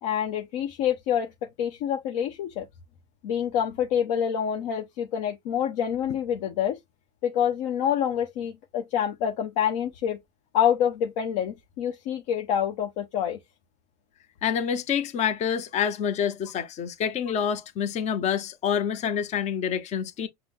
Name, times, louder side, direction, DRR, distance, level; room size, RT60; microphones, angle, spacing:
voice 1, 0.0-1.3 1.6-2.7 3.2-6.8 7.2-10.2 10.5-13.4, left 9 dB, 65° left, 0.9 m, -27 dB
voice 2, 14.4-20.3, left 8 dB, 35° left, 0.7 m, -27 dB
5.9 x 2.2 x 3.6 m
supercardioid pair, 120°, 20 cm